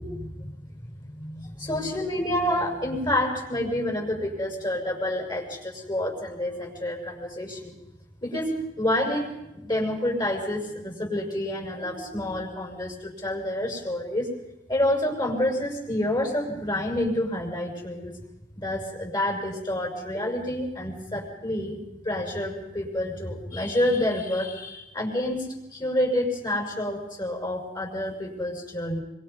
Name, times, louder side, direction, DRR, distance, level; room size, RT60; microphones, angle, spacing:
voice 1, 0.0-7.7 8.2-14.3 14.7-18.2 18.6-21.8 22.0-25.5 25.7-29.0, left 1 dB, 25° left, 1 dB, 6.6 m, -28 dB
27.0 x 25.5 x 5.5 m, 0.92 s
head